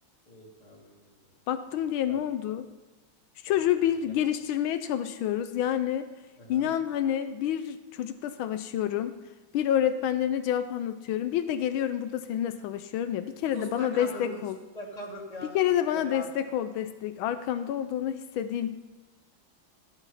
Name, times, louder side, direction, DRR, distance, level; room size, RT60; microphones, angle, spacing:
voice 1, 0.3-1.2 2.1-2.2 3.5-3.6 4.0-4.1 6.4-6.7 13.5-14.4 14.7-15.6 15.9-16.3, left 1 dB, 20° left, -4 dB, 2.7 m, -41 dB
voice 2, 1.5-2.7 3.4-6.1 6.5-9.1 9.5-14.6 15.5-18.8, left 10 dB, 85° left, 10 dB, 1.5 m, -28 dB
14.5 x 11.5 x 5.6 m, 1.2 s
omnidirectional pair, 2.2 m